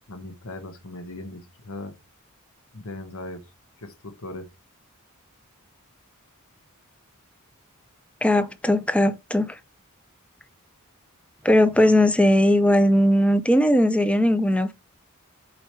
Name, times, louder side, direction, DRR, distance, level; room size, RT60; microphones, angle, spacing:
voice 1, 0.1-1.9 2.7-3.4 3.8-4.5 11.6-11.7, left 2 dB, 75° left, 1.0 m, -38 dB
voice 2, 8.2-9.6 11.4-14.7, left 1 dB, 5° left, 0.5 m, -19 dB
5.0 x 4.4 x 4.4 m
head